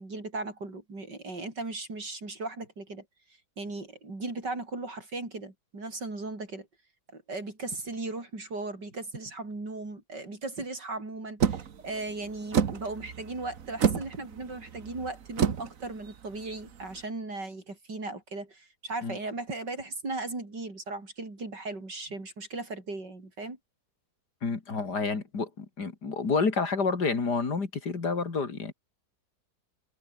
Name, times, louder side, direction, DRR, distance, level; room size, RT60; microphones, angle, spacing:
voice 1, 0.0-3.0 3.6-6.7 7.1-23.6, right 3 dB, 85° right, 6.3 m, -37 dB
sound 1, 11.4-17.0, right 7 dB, 55° right, 1.6 m, -30 dB
voice 2, 24.4-28.7, left 4 dB, 70° left, 3.6 m, -29 dB
omnidirectional pair, 1.8 m